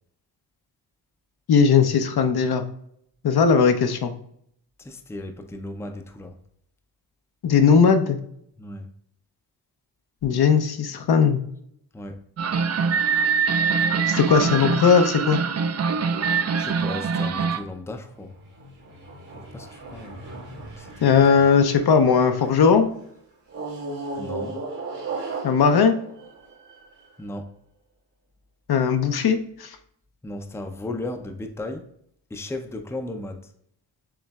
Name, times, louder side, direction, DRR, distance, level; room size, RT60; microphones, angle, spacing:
voice 1, 1.5-2.6 3.2-4.1 7.4-8.2 10.2-11.4 14.1-15.4 21.0-22.9 25.4-26.0 28.7-29.7, left 6 dB, 60° left, 7 dB, 0.7 m, -18 dB
voice 2, 4.8-6.3 8.6-8.9 11.9-12.2 16.6-18.3 19.5-20.4 20.8-21.5 24.2-24.6 27.2-27.5 30.2-31.8 32.3-33.5, left 2 dB, 5° left, 5 dB, 0.5 m, -35 dB
sound 1, 12.4-17.6, right 5 dB, 40° right, 0.5 m, -23 dB
sound 2, 18.0-22.7 23.5-27.1, right 3 dB, 80° right, 1.8 m, -37 dB
6.9 x 3.2 x 2.3 m, 0.70 s
cardioid pair, 75°, 42 cm